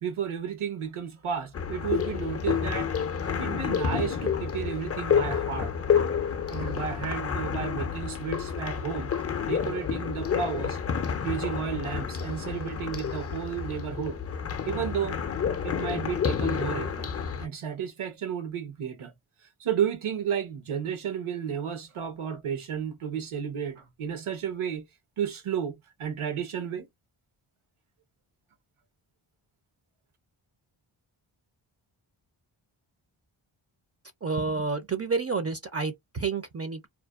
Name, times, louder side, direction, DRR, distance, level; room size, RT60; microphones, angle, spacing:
voice 1, 0.0-2.9 3.3-5.7 6.5-9.1 9.5-10.8 11.2-14.2 14.6-15.2 15.6-17.1 17.4-19.1 19.6-24.8 25.2-26.9, right 8 dB, 75° right, 0.9 m, -32 dB
sound 1, 1.5-17.5, left 7 dB, 30° left, 0.4 m, -29 dB
voice 2, 34.2-36.9, right 4 dB, 30° right, 0.5 m, -29 dB
2.5 x 2.1 x 2.3 m
wide cardioid pair, 75°, 50 cm